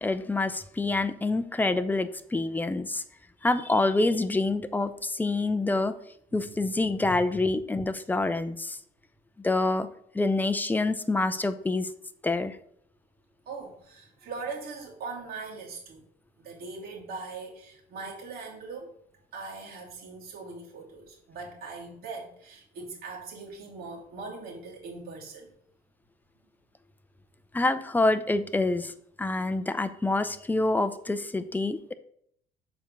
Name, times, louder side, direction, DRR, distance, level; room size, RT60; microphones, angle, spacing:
voice 1, 0.0-3.0 3.4-5.9 6.3-8.8 9.4-9.9 10.1-11.9 12.2-12.6 27.5-31.9, left 2 dB, 10° left, 10 dB, 0.6 m, -27 dB
voice 2, 13.4-16.0 16.4-18.9 19.3-25.5, right 4 dB, 65° right, -3 dB, 2.8 m, -40 dB
6.9 x 4.5 x 5.2 m, 0.67 s
cardioid pair, 110°, 17 cm